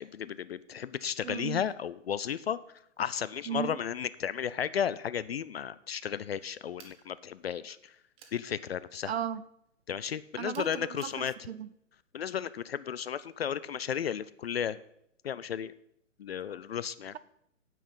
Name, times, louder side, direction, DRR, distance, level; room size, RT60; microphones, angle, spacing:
voice 1, 0.0-2.6 3.0-7.9 8.3-9.1 9.9-11.3 12.1-14.8 15.2-15.7 16.2-17.1, left 8 dB, 50° left, 17 dB, 0.4 m, -34 dB
voice 2, 1.2-1.6 3.5-3.8 9.1-9.4 10.4-11.7, right 9 dB, 55° right, 16 dB, 0.6 m, -36 dB
sound 1, 6.8-7.1 8.2-8.4 10.5-11.2, right 6 dB, 15° right, 1.0 m, -54 dB
9.2 x 8.1 x 5.4 m, 0.74 s
figure-of-eight pair, 125°, 39 cm